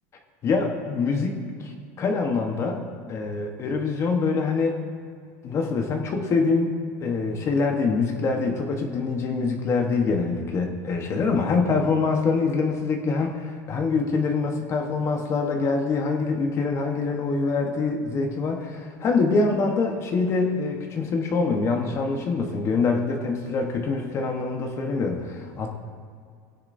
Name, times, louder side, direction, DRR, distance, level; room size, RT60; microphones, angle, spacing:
voice 1, 0.4-2.8 3.1-4.8 5.4-25.7, left 4 dB, 35° left, 3 dB, 1.1 m, -25 dB
17.0 x 10.0 x 2.6 m, 2.2 s
supercardioid pair, 140°, 9 cm